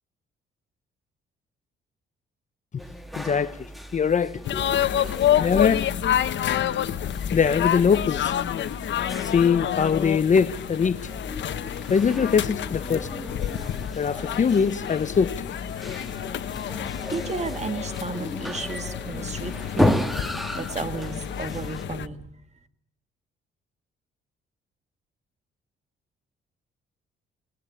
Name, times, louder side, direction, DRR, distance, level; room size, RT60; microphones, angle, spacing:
sound 1, 2.8-21.8, equal, ahead, 1.9 m, -34 dB
voice 1, 3.2-3.6 3.9-4.6 5.4-5.9 7.3-8.3 9.2-11.0 11.9-13.1 14.0-15.3, left 6 dB, 40° left, 0.9 m, -22 dB
sound 2, 4.4-22.1, left 10 dB, 65° left, 1.2 m, -28 dB
voice 2, 17.1-20.0 20.6-22.3, right 4 dB, 35° right, 2.1 m, -33 dB
20.0 x 18.0 x 8.5 m
cardioid pair, 90°, 20 cm